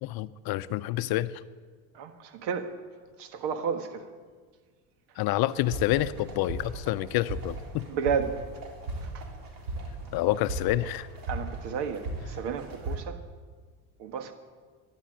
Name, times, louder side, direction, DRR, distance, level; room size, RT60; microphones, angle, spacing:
voice 1, 0.0-1.3 5.2-7.8 10.1-11.1, left 15 dB, 55° left, 15 dB, 0.6 m, -28 dB
voice 2, 1.9-2.7 3.2-4.1 7.9-8.4 9.0-9.3 11.3-13.2 14.0-14.3, right 6 dB, 65° right, 8 dB, 1.7 m, -32 dB
sound 1, 5.5-13.0, right 2 dB, 50° right, 3.5 m, -38 dB
13.5 x 10.5 x 7.9 m, 1.5 s
supercardioid pair, 90°, 44 cm